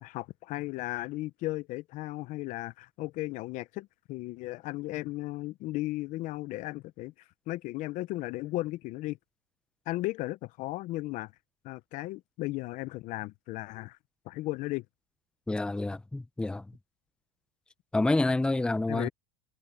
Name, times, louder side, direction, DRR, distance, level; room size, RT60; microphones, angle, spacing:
voice 1, 0.0-7.1 7.5-9.2 9.9-11.3 11.6-14.0 14.3-14.8 18.9-19.1, left 18 dB, 50° left, 0.7 m, -35 dB
voice 2, 15.5-16.8 17.9-19.1, left 2 dB, 5° left, 0.7 m, -28 dB
supercardioid pair, 125°, 16 cm